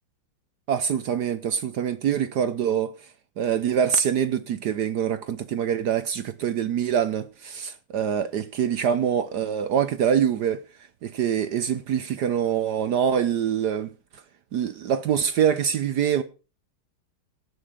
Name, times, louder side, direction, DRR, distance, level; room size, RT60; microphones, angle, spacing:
voice 1, 0.7-3.1 3.4-10.6 11.0-13.9 14.5-16.2, right 8 dB, 65° right, 1.1 m, -24 dB
17.5 x 6.4 x 5.0 m
omnidirectional pair, 2.3 m